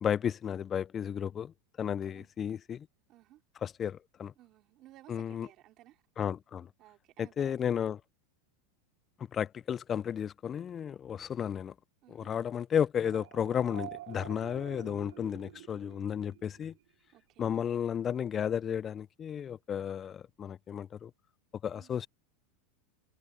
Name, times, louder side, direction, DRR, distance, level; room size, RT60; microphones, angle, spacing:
voice 1, 0.0-1.5 1.8-2.9 3.6-4.3 5.1-5.5 6.2-6.7 7.2-8.0 9.3-11.7 12.1-16.7 17.4-21.1 21.6-22.1, left 8 dB, 25° left, 0.3 m, -33 dB
voice 2, 3.1-3.4 4.4-6.0 6.8-7.7 12.0-12.3 17.1-17.6 21.7-21.9, right 15 dB, 40° right, 3.0 m, -57 dB
sound 1, 13.0-16.8, right 15 dB, 75° right, 0.5 m, -48 dB
supercardioid pair, 135°, 0 cm